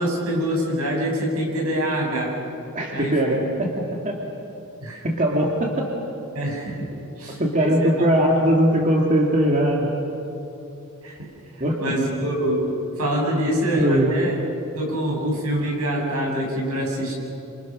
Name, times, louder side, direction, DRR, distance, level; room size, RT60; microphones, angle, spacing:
voice 1, 0.0-2.4 2.9-3.2 4.8-5.0 6.3-6.8 7.2-7.7 11.0-11.2 11.8-14.3 14.8-17.1, equal, 80° right, -1 dB, 7.7 m, -25 dB
voice 2, 2.7-3.7 4.0-4.2 5.0-5.9 7.4-9.9 11.6-12.0 13.5-14.1, equal, 35° right, -1 dB, 2.4 m, -20 dB
29.5 x 27.0 x 6.3 m, 2.8 s
head